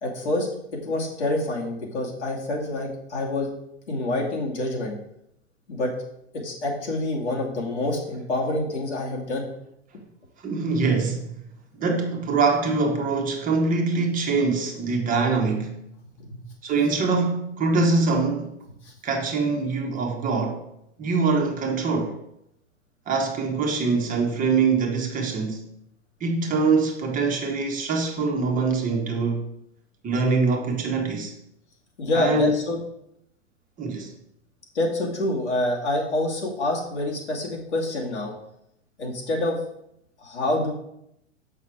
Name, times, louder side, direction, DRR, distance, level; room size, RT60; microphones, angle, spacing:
voice 1, 0.0-3.5 3.9-5.0 5.7-5.9 6.3-9.5 16.2-16.4 18.8-18.9 32.0-32.8 34.7-38.3 39.0-39.6 40.2-40.7, left 1 dB, 75° left, 2.3 m, -27 dB
voice 2, 10.4-11.4 11.8-15.8 16.6-18.5 19.0-20.6 21.0-22.2 23.1-25.6 26.2-29.5 30.0-31.3 32.1-32.5 33.8-34.1, right 4 dB, 25° right, 1.4 m, -24 dB
7.1 x 5.9 x 4.7 m
figure-of-eight pair, 100°, 34 cm